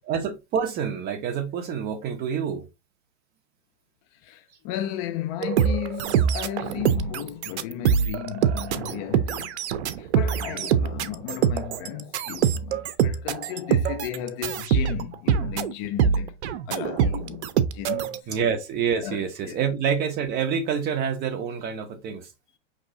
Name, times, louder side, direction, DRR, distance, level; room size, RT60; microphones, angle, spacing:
voice 1, 0.0-2.7 10.5-10.7 18.3-22.3, right 7 dB, 30° right, 0.9 m, -27 dB
voice 2, 4.1-9.6 10.0-16.4 16.7-18.3 19.0-19.6, left 11 dB, 35° left, 0.4 m, -34 dB
sound 1, 5.4-18.2, right 8 dB, 75° right, 0.6 m, -24 dB
5.3 x 3.0 x 2.6 m
hypercardioid pair, 130°, 34 cm